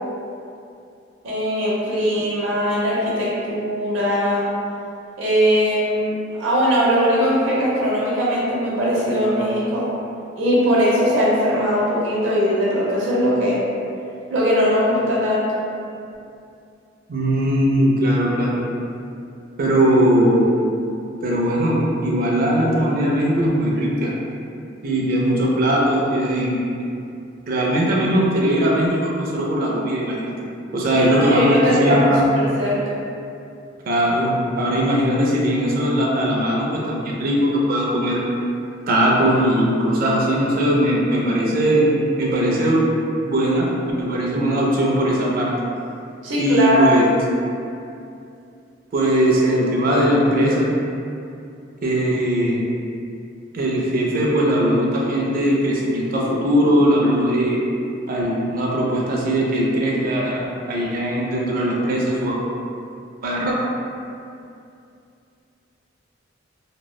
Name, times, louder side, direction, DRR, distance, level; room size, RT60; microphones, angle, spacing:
voice 1, 1.2-4.5 5.2-9.8 10.4-13.6 14.3-15.6 30.9-32.1 32.3-32.8 46.2-47.0, equal, 80° right, -7 dB, 0.7 m, -20 dB
voice 2, 17.1-18.6 19.6-20.5 21.2-24.1 24.8-26.7 27.5-30.3 30.7-32.2 33.9-38.2 38.9-41.8 42.2-42.9 43.2-43.7 44.0-45.5 46.4-47.1 48.9-50.7 51.8-52.7 53.5-57.6 58.1-62.4 63.2-63.5, equal, 50° right, -3 dB, 0.4 m, -19 dB
2.8 x 2.0 x 2.2 m, 2.6 s
head